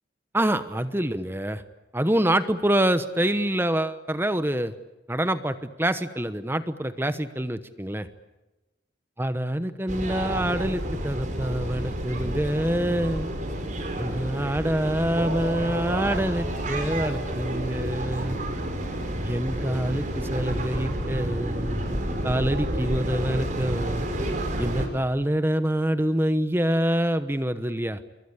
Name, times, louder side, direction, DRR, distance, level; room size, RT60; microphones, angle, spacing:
voice 1, 0.3-1.6 1.9-4.8 5.1-8.1 9.2-13.3 14.0-18.4 19.2-24.1 24.6-28.0, right 1 dB, 10° right, 11 dB, 1.0 m, -26 dB
sound 1, 9.9-24.9, right 1 dB, 40° right, 5.1 m, -30 dB
27.5 x 23.0 x 8.4 m, 1.1 s
head